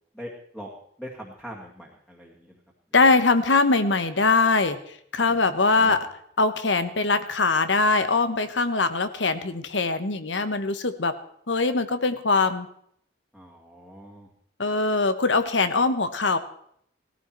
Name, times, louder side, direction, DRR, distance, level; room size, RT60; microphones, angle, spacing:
voice 1, 0.1-0.7 1.0-2.5 5.3-6.0 13.3-14.3, equal, 5° left, -3 dB, 2.1 m, -42 dB
voice 2, 2.9-4.8 5.1-6.1 6.4-11.2 11.5-12.7 14.6-16.4, left 3 dB, 85° left, 11 dB, 1.2 m, -22 dB
17.5 x 15.0 x 4.6 m, 0.68 s
head